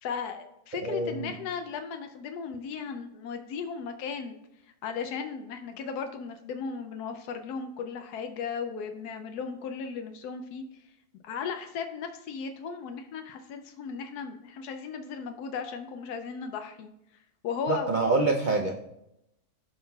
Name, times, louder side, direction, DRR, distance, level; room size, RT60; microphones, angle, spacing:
voice 1, 0.0-4.4 4.8-10.9 11.2-16.9 17.4-17.9, left 6 dB, 90° left, 6 dB, 1.2 m, -36 dB
voice 2, 0.7-1.3 17.7-18.9, right 3 dB, 65° right, 2 dB, 0.5 m, -26 dB
15.0 x 5.5 x 2.3 m, 0.85 s
omnidirectional pair, 1.6 m